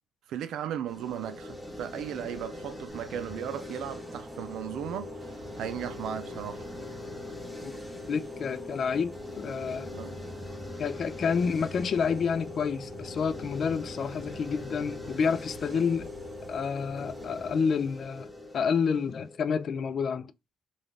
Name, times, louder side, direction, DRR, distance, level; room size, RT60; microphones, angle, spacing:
voice 1, 0.3-6.7 9.9-10.2 15.7-15.9, right 9 dB, 80° right, 0.5 m, -36 dB
sound 1, 0.9-19.9, left 2 dB, 5° left, 1.1 m, -42 dB
sound 2, 2.9-17.5, right 2 dB, 35° right, 1.4 m, -47 dB
voice 2, 8.1-9.9 10.8-16.1 16.5-18.3 18.5-20.3, left 6 dB, 55° left, 0.4 m, -29 dB
3.9 x 2.4 x 3.3 m
cardioid pair, 100°, 0 cm